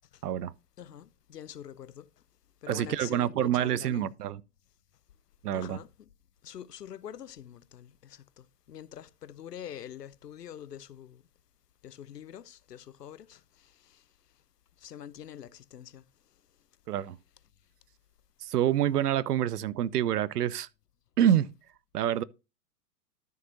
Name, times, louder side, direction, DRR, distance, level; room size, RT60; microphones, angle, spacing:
voice 1, 0.8-2.1 2.6-4.1 5.5-5.9 6.4-11.2 11.8-14.0 14.8-16.0, left 10 dB, 85° left, 0.7 m, -45 dB
voice 2, 2.7-4.4 5.4-5.8 16.9-17.2 18.4-20.7 21.2-21.5 21.9-22.2, right 11 dB, 75° right, 0.6 m, -27 dB
12.0 x 6.6 x 2.7 m
hypercardioid pair, 110°, 47 cm